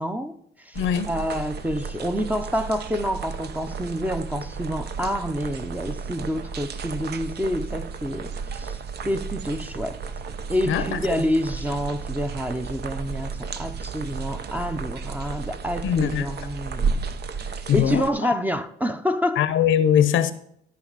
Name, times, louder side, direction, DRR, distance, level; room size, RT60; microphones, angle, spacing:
voice 1, 0.0-0.8 1.1-8.8 9.0-10.0 10.5-17.0 17.4-19.5, equal, 10° right, 0.7 m, -28 dB
sound 1, 0.7-18.1, right 5 dB, 55° right, 0.7 m, -33 dB
voice 2, 0.8-1.1 10.7-11.0 15.8-16.3 17.7-18.3 19.4-20.3, left 9 dB, 80° left, 0.8 m, -21 dB
13.0 x 5.3 x 4.0 m
cardioid pair, 90°, 20 cm